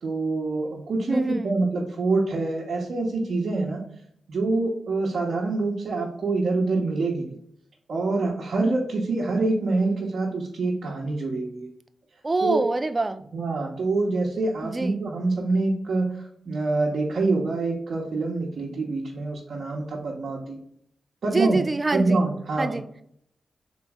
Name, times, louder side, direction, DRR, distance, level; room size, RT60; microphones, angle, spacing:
voice 1, 0.0-3.8 4.3-7.3 7.9-11.7 12.4-12.6 13.3-16.1 16.5-20.6 21.2-21.6 21.9-22.8, right 3 dB, 70° right, -3 dB, 0.8 m, -25 dB
voice 2, 1.1-1.5 12.2-13.2 14.6-15.0 21.3-22.2 22.6-22.8, right 2 dB, 25° right, 10 dB, 0.3 m, -25 dB
3.9 x 3.0 x 3.5 m, 0.70 s
cardioid pair, 90°, 0 cm